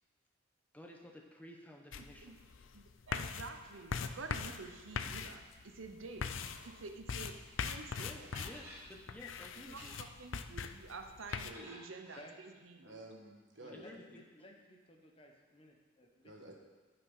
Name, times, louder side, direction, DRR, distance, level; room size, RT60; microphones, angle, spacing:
voice 1, 0.7-2.3 8.0-9.9 13.7-14.2, left 1 dB, 10° left, 1 dB, 0.8 m, -53 dB
sound 1, 1.9-11.5, left 5 dB, 70° left, 0.5 m, -42 dB
voice 2, 2.0-2.4 2.7-6.3 6.6-8.3 9.7-12.9, right 3 dB, 75° right, 6 dB, 0.8 m, -49 dB
sound 2, 7.8-7.9 8.3-8.8 9.6-10.2 11.3-12.2, equal, 15° right, 3.5 m, -53 dB
voice 3, 12.8-14.0 16.2-16.5, right 1 dB, 60° right, 1 dB, 1.5 m, -51 dB
voice 4, 13.6-16.3, equal, 25° left, 1 dB, 1.0 m, -57 dB
11.5 x 5.9 x 5.5 m, 1.3 s
head